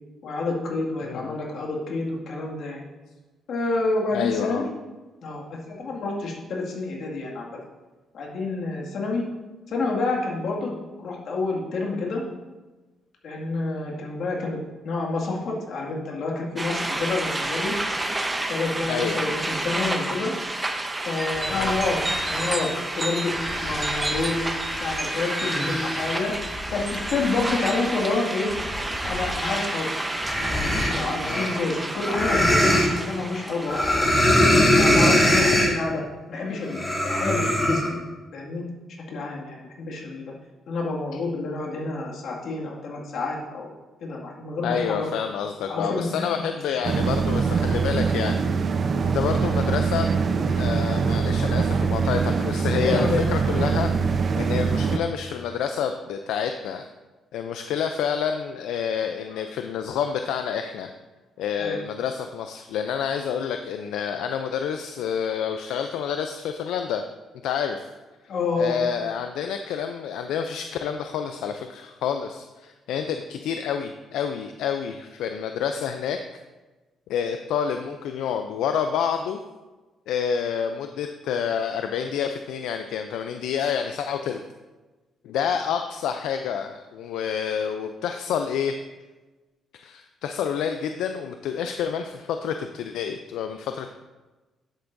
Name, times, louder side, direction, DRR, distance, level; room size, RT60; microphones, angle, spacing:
voice 1, 0.2-2.8 3.5-4.7 5.2-7.6 8.1-9.2 9.7-10.7 11.0-12.2 13.2-14.6 14.8-17.7 18.4-20.3 21.1-23.3 23.6-26.3 26.7-28.5 29.0-30.0 30.4-34.1 34.7-38.0 38.3-38.6 39.1-40.3 40.7-43.7 44.0-45.1 45.7-47.4 52.8-53.4 61.6-61.8 68.3-68.8, left 3 dB, 65° left, -2 dB, 2.0 m, -28 dB
voice 2, 1.0-1.4 4.1-4.7 18.9-19.3 21.5-21.8 31.2-31.5 44.6-48.4 49.0-50.1 50.6-56.9 57.3-60.9 61.4-67.0 67.4-67.9 68.6-76.4 77.1-79.4 80.1-84.4 85.2-88.7 89.7-93.9, left 7 dB, 85° left, 6 dB, 0.4 m, -28 dB
sound 1, 16.6-34.6, right 2 dB, 15° right, 0.9 m, -30 dB
sound 2, 21.3-22.5 23.0-29.8 30.1-32.9 33.7-35.8 36.7-37.9, left 1 dB, 15° left, 2.9 m, -24 dB
sound 3, 46.8-55.0, right 5 dB, 45° right, 0.6 m, -23 dB
10.5 x 7.9 x 2.6 m, 1.2 s
cardioid pair, 90°, 0 cm